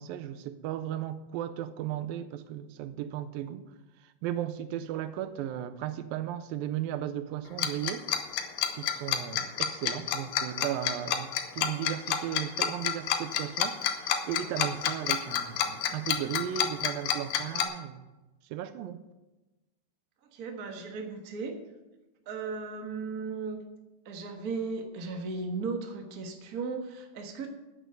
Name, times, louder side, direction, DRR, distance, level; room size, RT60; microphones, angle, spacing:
voice 1, 0.0-3.7 4.2-8.1 8.8-18.0 18.5-19.0, right 11 dB, 85° right, 2.4 m, -35 dB
Tick-tock, 7.6-17.6, left 9 dB, 75° left, 2.4 m, -28 dB
voice 2, 20.3-21.5 22.3-23.6 24.0-27.5, right 4 dB, 65° right, 0.9 m, -36 dB
9.3 x 8.3 x 7.8 m
omnidirectional pair, 4.1 m